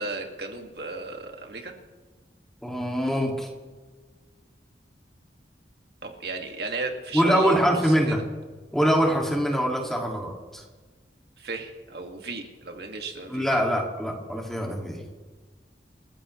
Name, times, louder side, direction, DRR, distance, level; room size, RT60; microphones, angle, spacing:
voice 1, 0.0-1.7 6.0-8.2 11.4-13.5, right 3 dB, 65° right, 3 dB, 2.1 m, -35 dB
voice 2, 2.6-3.5 7.1-8.2 8.7-10.6 13.3-15.0, equal, ahead, -1 dB, 2.2 m, -24 dB
29.0 x 14.5 x 3.2 m, 1.4 s
head